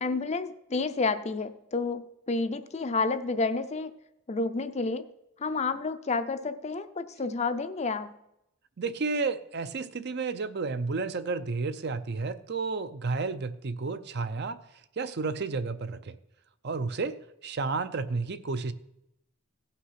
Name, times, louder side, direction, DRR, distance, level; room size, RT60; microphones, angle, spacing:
voice 1, 0.0-3.9 4.3-5.1 5.4-8.1, left 3 dB, 30° left, 10 dB, 0.5 m, -30 dB
voice 2, 8.8-14.6 15.0-16.2 16.6-17.1 17.4-18.7, right 4 dB, 50° right, 12 dB, 0.5 m, -31 dB
16.5 x 5.8 x 5.8 m, 0.82 s
head